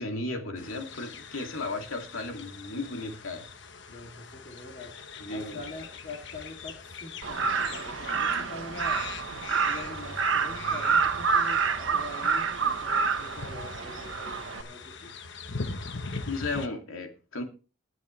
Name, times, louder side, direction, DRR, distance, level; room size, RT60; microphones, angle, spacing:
voice 1, 0.0-3.5 5.2-5.6 16.3-17.4, left 2 dB, 85° left, 3 dB, 2.7 m, -35 dB
sound 1, 0.6-16.7, left 4 dB, 60° left, 1.1 m, -42 dB
voice 2, 3.9-5.0 5.3-9.1 9.6-15.1, left 2 dB, 40° left, -1 dB, 2.8 m, -44 dB
Crow, 7.2-14.6, right 5 dB, 70° right, 1.2 m, -28 dB
20.0 x 9.6 x 3.3 m, 0.35 s
head